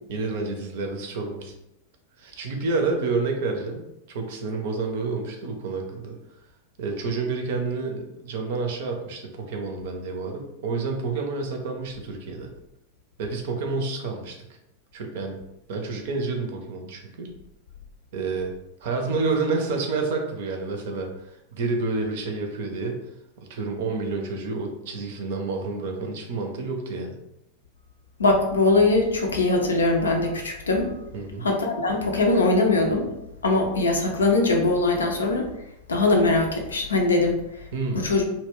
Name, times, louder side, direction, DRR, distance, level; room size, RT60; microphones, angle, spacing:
voice 1, 0.1-1.5 2.2-6.2 6.8-12.5 13.2-14.4 14.9-15.4 15.7-17.3 18.1-18.5 18.8-23.0 23.5-27.2 31.1-31.5 37.7-38.1, right 3 dB, 55° right, 2 dB, 0.5 m, -29 dB
voice 2, 28.2-30.9 31.4-33.1 33.4-35.5 35.9-37.4 37.9-38.2, left 2 dB, 70° left, 2 dB, 0.5 m, -21 dB
2.2 x 2.1 x 3.4 m, 0.86 s
figure-of-eight pair, 90°, 0 cm